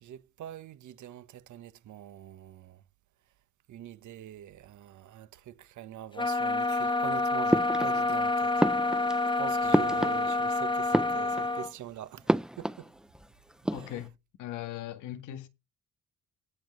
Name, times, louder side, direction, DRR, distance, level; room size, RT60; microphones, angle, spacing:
voice 1, 0.0-2.8 3.7-8.6 8.9-9.1 9.4-12.9 13.7-13.9, right 11 dB, 75° right, 1.4 m, -44 dB
sound 1, 6.2-11.7, left 2 dB, 15° left, 1.1 m, -28 dB
sound 2, 7.5-8.2 8.6-10.6 10.8-11.7 12.3-13.3 13.5-14.1, right 1 dB, ahead, 0.6 m, -29 dB
voice 2, 13.7-14.1 14.4-15.5, left 12 dB, 90° left, 1.8 m, -39 dB
18.0 x 6.2 x 3.3 m
cardioid pair, 90°, 30 cm